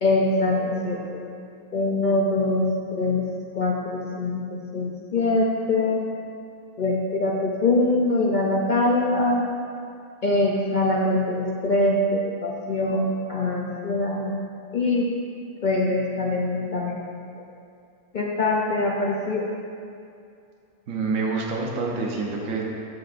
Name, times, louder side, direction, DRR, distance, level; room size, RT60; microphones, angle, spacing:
voice 1, 0.0-1.0 1.7-3.2 3.5-4.4 4.7-6.0 6.8-9.4 10.2-14.3 14.7-15.1 15.6-17.0 18.1-19.5, left 2 dB, 80° left, -2 dB, 0.4 m, -23 dB
voice 2, 20.9-22.6, right 4 dB, 65° right, -1 dB, 1.2 m, -27 dB
13.0 x 4.7 x 2.5 m, 2.4 s
omnidirectional pair, 1.6 m